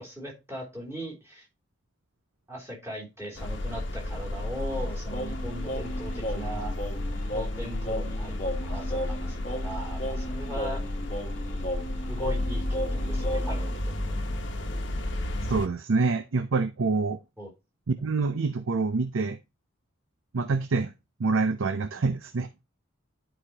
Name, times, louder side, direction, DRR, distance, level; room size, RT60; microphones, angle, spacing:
voice 1, 0.0-1.5 2.5-6.7 7.3-8.4 8.6-10.8 12.1-14.2 17.4-17.5, equal, 10° right, 3.1 m, -39 dB
sound 1, 3.3-15.7, left 1 dB, 60° left, 1.1 m, -32 dB
Singing, 5.1-13.7, equal, 35° left, 1.1 m, -35 dB
voice 2, 15.5-17.2 17.9-19.4 20.3-20.9 21.2-22.5, right 4 dB, 75° right, 0.6 m, -26 dB
11.0 x 5.0 x 2.8 m
head